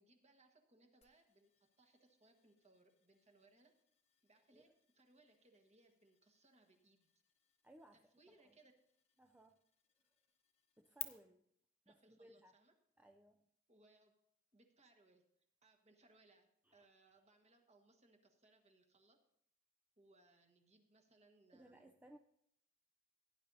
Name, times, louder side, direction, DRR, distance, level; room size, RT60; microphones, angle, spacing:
voice 1, 0.0-1.5 1.8-3.7 4.2-4.7 4.9-7.1 7.9-8.7 11.8-12.7 13.7-14.1 14.5-15.2 15.6-19.2 20.0-21.9, right 2 dB, 35° right, 3 dB, 1.5 m, -70 dB
sound 1, 1.0-11.0, left 11 dB, 35° left, 0.9 m, -58 dB
voice 2, 7.6-8.6 9.2-9.6 10.0-10.1 10.8-11.5 11.9-12.6 13.0-13.4 16.6-16.9 21.5-22.2, right 1 dB, 10° right, 5 dB, 0.4 m, -63 dB
17.0 x 10.0 x 2.7 m, 0.71 s
head